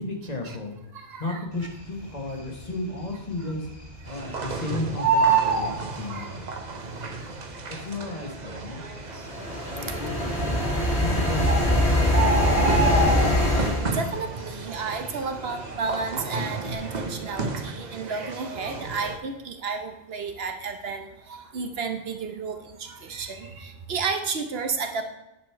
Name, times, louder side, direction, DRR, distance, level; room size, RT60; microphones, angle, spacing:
voice 1, 0.0-0.8 1.2-3.7 4.1-6.4 7.7-8.8 9.7-10.6 11.0-12.7, left 2 dB, 40° left, 1 dB, 1.4 m, -34 dB
voice 2, 0.9-1.5 3.4-3.5 6.1-6.3 7.2-7.3 9.9-10.0 13.5-25.0, right 4 dB, 70° right, 6 dB, 1.1 m, -32 dB
Bird, 2.1-2.6 3.0-3.1 3.3-4.5 4.8-6.6 7.5-7.6 8.2-8.3 8.5-8.6 9.3-9.7 10.7-10.8 11.1-11.2 11.5-13.7 14.1-14.4 14.7-16.1 16.4-16.7, right 4 dB, 25° right, 2.0 m, -25 dB
sound 1, 4.1-19.2, right 3 dB, 45° right, 0.9 m, -35 dB
sound 2, 9.1-13.8, left 1 dB, 85° left, 2.7 m, -23 dB
9.8 x 5.1 x 4.6 m, 0.93 s
omnidirectional pair, 1.1 m